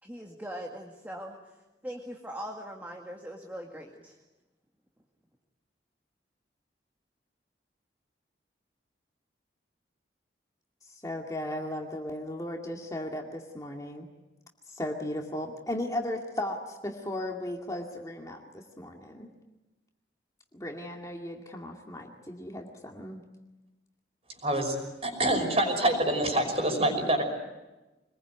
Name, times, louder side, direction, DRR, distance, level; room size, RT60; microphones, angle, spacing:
voice 1, 0.0-1.4 1.8-4.2, equal, 10° right, 0 dB, 2.0 m, -40 dB
voice 2, 11.0-14.1 14.7-19.3 20.5-23.2, left 1 dB, 20° left, 1 dB, 2.2 m, -36 dB
voice 3, 24.4-27.2, right 1 dB, 35° right, 5 dB, 5.6 m, -26 dB
25.5 x 21.0 x 9.3 m, 1.1 s
head